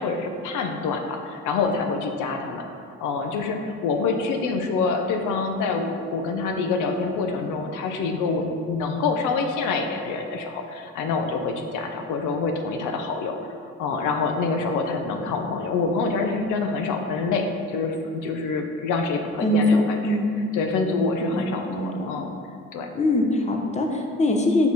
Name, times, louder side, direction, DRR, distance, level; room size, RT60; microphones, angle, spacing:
voice 1, 0.0-13.5 13.8-20.2 20.5-22.3 22.7-22.9, left 4 dB, 90° left, 4 dB, 0.6 m, -26 dB
voice 2, 19.4-20.4 21.3-22.1 22.9-24.7, left 1 dB, 25° left, 2 dB, 0.7 m, -22 dB
5.3 x 4.7 x 3.9 m, 2.3 s
cardioid pair, 90°, 30 cm